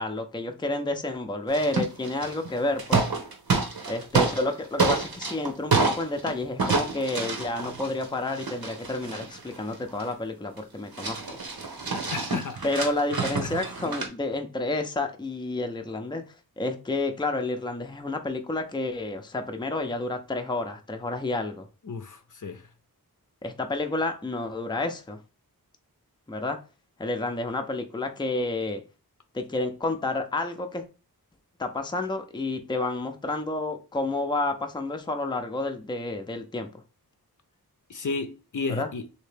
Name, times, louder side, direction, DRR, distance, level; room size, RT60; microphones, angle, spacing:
voice 1, 0.0-3.0 3.9-11.4 12.6-16.2 16.6-21.7 23.4-25.2 26.3-26.6 27.0-28.8 29.3-30.8 31.6-36.7 38.7-38.9, left 2 dB, 10° left, 0.5 m, -30 dB
sound 1, 1.5-2.5 2.8-4.5 4.8-6.3 6.6-10.1 10.6-10.7 10.9-14.1, right 4 dB, 70° right, 1.0 m, -27 dB
voice 2, 12.1-12.6 13.4-13.6 21.8-22.6 37.9-39.0, left 4 dB, 55° left, 0.6 m, -32 dB
3.2 x 2.8 x 3.3 m
wide cardioid pair, 60°, 38 cm